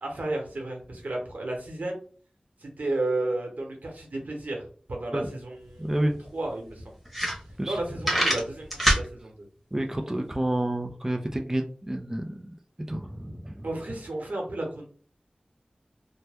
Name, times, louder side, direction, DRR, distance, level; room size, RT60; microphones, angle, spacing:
voice 1, 0.0-2.0 2.6-4.6 4.9-6.9 7.7-9.4 13.6-14.9, right 2 dB, 80° right, 1 dB, 1.0 m, -33 dB
sound 1, 5.7-5.8 6.1-6.2 6.7-6.8 7.1-7.7 8.0-9.1, equal, ahead, 1.2 m, -23 dB
voice 2, 5.8-6.2 7.6-7.7 9.7-12.5 12.9-13.7, right 1 dB, 15° right, 2 dB, 0.4 m, -29 dB
2.9 x 2.1 x 3.4 m, 0.42 s
wide cardioid pair, 65°, 3 cm